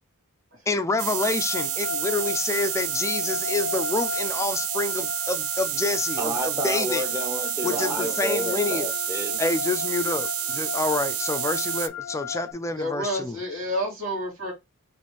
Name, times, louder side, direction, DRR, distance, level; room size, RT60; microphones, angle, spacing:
voice 1, 0.7-7.0 7.6-8.9 9.4-13.4, left 3 dB, 15° left, 0.3 m, -28 dB
sound 1, 1.0-11.9, right 14 dB, 80° right, 0.4 m, -29 dB
sound 2, 1.2-12.5, left 7 dB, 75° left, 0.5 m, -35 dB
voice 2, 6.2-9.4, right 1 dB, 10° right, 0.9 m, -31 dB
voice 3, 7.6-8.2 12.8-14.5, equal, 65° right, 2.3 m, -30 dB
4.2 x 3.1 x 3.1 m
head